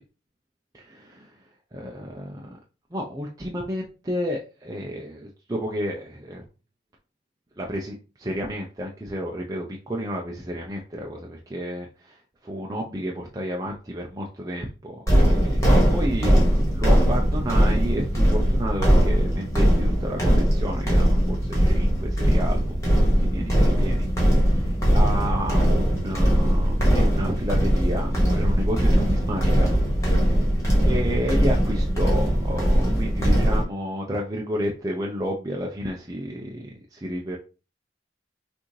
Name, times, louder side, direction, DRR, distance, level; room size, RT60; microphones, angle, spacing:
voice 1, 0.7-1.3 1.7-2.5 2.9-6.4 7.6-22.8 23.2-29.7 30.8-37.4, equal, 20° right, -1 dB, 0.5 m, -31 dB
sound 1, 15.1-33.6, equal, 15° left, 1.6 m, -20 dB
6.0 x 2.7 x 3.1 m, 0.33 s
head